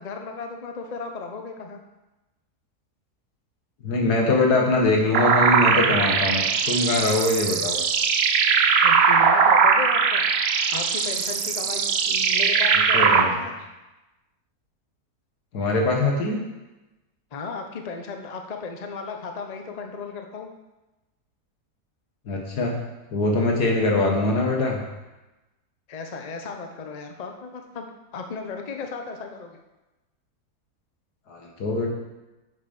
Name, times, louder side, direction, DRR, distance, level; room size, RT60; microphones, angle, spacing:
voice 1, 0.0-1.8 8.8-10.3 10.7-13.5 17.3-20.5 25.9-27.8 28.1-29.6, left 4 dB, 35° left, 4 dB, 0.8 m, -35 dB
voice 2, 3.8-7.8 12.9-13.4 15.5-16.4 22.3-22.8 23.1-24.8 31.3-31.9, left 2 dB, 85° left, 0 dB, 2.2 m, -22 dB
sound 1, 5.1-13.2, right 6 dB, 55° right, 0.8 m, -20 dB
9.0 x 6.7 x 5.3 m, 1.0 s
omnidirectional pair, 1.7 m